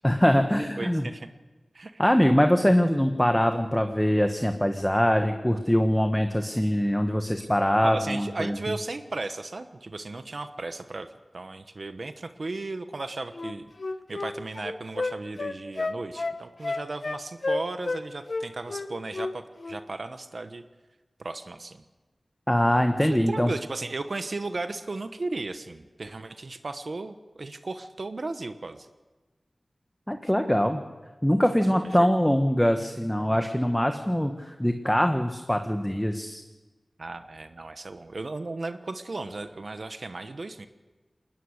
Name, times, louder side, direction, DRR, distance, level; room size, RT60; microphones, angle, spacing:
voice 1, 0.0-1.1 2.0-8.6 22.5-23.5 30.1-30.8 31.2-36.4, equal, 10° left, 6 dB, 1.4 m, -23 dB
voice 2, 0.8-1.3 1.7-2.0 7.8-11.1 11.3-13.6 14.1-20.6 21.2-21.8 23.3-28.9 30.3-30.6 31.6-31.7 32.0-32.1 37.0-40.7, right 3 dB, 70° right, 9 dB, 1.1 m, -35 dB
Wind instrument woodwind instrument, 13.3-18.0 18.3-19.3 19.6-19.8, left 3 dB, 70° left, 1.1 m, -31 dB
20.5 x 20.0 x 6.6 m, 1.2 s
cardioid pair, 45°, 0 cm